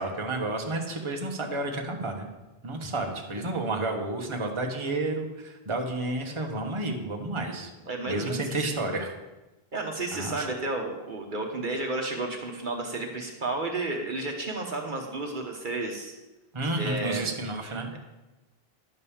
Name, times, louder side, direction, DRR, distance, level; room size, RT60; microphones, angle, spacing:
voice 1, 0.0-2.3 2.6-7.7 8.1-9.1 10.1-10.5 16.5-17.9, right 2 dB, 30° right, 2 dB, 1.2 m, -31 dB
voice 2, 7.9-8.6 9.7-16.2 16.8-17.3, right 2 dB, 55° right, 1 dB, 1.2 m, -32 dB
11.0 x 5.3 x 7.1 m, 1.1 s
omnidirectional pair, 1.0 m